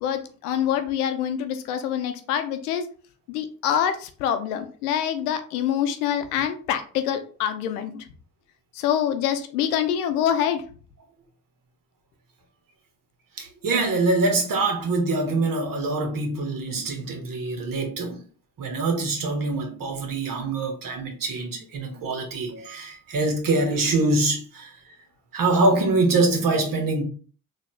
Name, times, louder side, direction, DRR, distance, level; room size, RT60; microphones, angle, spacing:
voice 1, 0.0-2.9 3.3-8.0 8.8-10.6, left 9 dB, 80° left, 0.6 m, -25 dB
voice 2, 13.4-18.2 18.6-24.7 25.3-27.0, right 2 dB, 50° right, 1.4 m, -24 dB
4.1 x 2.7 x 3.2 m
hypercardioid pair, 50°, 44 cm